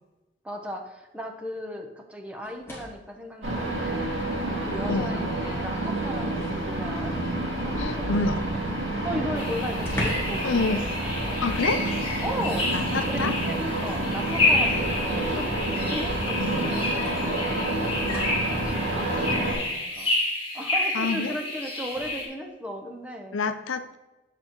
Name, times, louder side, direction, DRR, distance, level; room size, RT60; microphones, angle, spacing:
voice 1, 0.4-4.2 4.6-7.1 7.6-8.3 9.0-10.8 12.2-17.3 17.8-18.2 18.6-20.1 20.5-23.4, equal, 5° right, 2 dB, 0.8 m, -36 dB
sound 1, 2.4-3.2 4.5-4.6 5.1-6.7 8.8-8.9 9.1-9.2 9.8-10.5 10.8-11.0 12.5-13.3 14.4-14.5 16.1-16.2 17.0-18.5 21.9-22.1, left 1 dB, 15° left, 1.6 m, -39 dB
sound 2, 3.4-19.5, right 1 dB, 75° right, 2.1 m, -28 dB
voice 2, 7.8-8.4 10.4-10.9 11.4-12.0 12.7-13.3 16.4-16.7 20.9-21.3 23.3-24.0, left 4 dB, 85° left, 9 dB, 0.6 m, -28 dB
sound 3, 9.3-22.2, left 2 dB, 30° left, 2.4 m, -29 dB
8.5 x 6.6 x 3.0 m, 1.0 s
head